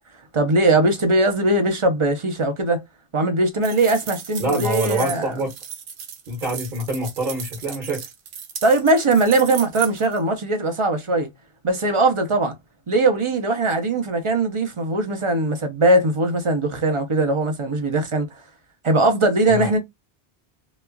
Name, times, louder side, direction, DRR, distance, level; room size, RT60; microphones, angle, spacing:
voice 1, 0.3-2.8 3.1-5.3 8.6-11.3 11.6-12.5 12.9-18.3 18.8-19.8, right 2 dB, 35° right, 0.6 m, -20 dB
sound 1, 3.6-10.2, right 8 dB, 85° right, 0.9 m, -35 dB
voice 2, 4.4-5.5 6.3-8.0 19.5-19.7, right 2 dB, 50° right, 1.1 m, -25 dB
3.0 x 2.3 x 2.2 m
omnidirectional pair, 1.1 m